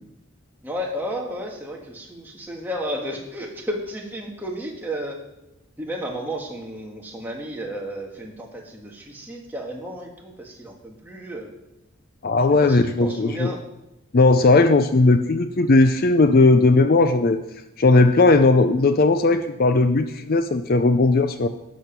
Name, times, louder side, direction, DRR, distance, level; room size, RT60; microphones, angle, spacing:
voice 1, 0.6-5.2 5.8-11.5 12.6-13.6, equal, 10° right, -1 dB, 1.6 m, -32 dB
voice 2, 12.2-13.5 14.1-17.4 17.8-21.5, left 3 dB, 40° left, 9 dB, 0.5 m, -17 dB
12.5 x 7.1 x 5.9 m, 0.91 s
head